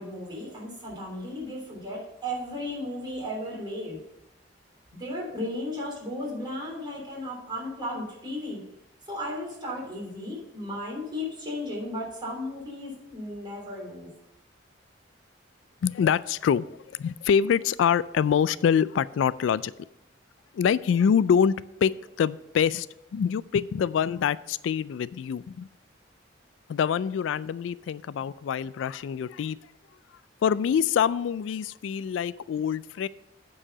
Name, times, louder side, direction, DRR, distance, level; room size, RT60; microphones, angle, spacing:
voice 1, 0.0-4.0 5.0-8.6 9.1-14.1, left 1 dB, 25° right, -4 dB, 3.2 m, -35 dB
voice 2, 15.8-19.7 20.5-21.5 21.8-21.9 22.2-22.9 23.1-25.7 26.7-29.6 30.4-33.1, left 7 dB, 90° left, 18 dB, 0.3 m, -25 dB
8.7 x 4.8 x 6.6 m, 0.85 s
head